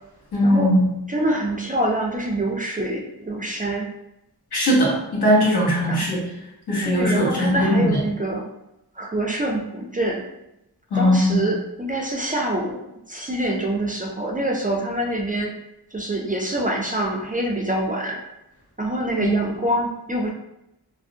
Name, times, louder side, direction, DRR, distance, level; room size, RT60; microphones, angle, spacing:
voice 1, 0.3-0.8 4.5-6.2 6.7-8.0 10.9-11.4 19.2-19.4, equal, 75° left, -6 dB, 1.1 m, -19 dB
voice 2, 1.1-3.9 5.9-6.1 6.8-8.5 9.0-10.2 10.9-12.8 13.1-15.5 15.9-18.2 18.8-20.3, right 1 dB, 25° right, 0 dB, 0.3 m, -25 dB
2.6 x 2.0 x 2.6 m, 0.87 s
wide cardioid pair, 60°, 39 cm